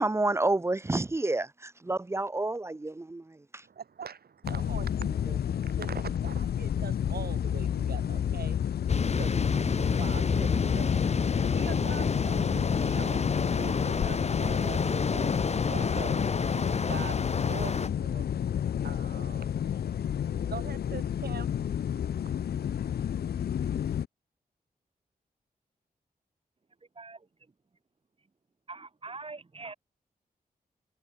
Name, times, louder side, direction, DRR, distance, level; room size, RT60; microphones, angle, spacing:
voice 1, 0.0-3.4, right 2 dB, 15° right, 0.6 m, -29 dB
voice 2, 3.6-8.6 9.2-13.3 13.6-16.2 16.5-18.4 18.8-22.9, right 6 dB, 80° right, 5.7 m, -44 dB
sound 1, 4.4-24.1, left 9 dB, 85° left, 0.6 m, -31 dB
sound 2, 8.9-17.9, left 5 dB, 45° left, 1.3 m, -29 dB
voice 3, 27.0-27.3 28.7-29.7, right 3 dB, 35° right, 4.1 m, -43 dB
wide cardioid pair, 125°, 16 cm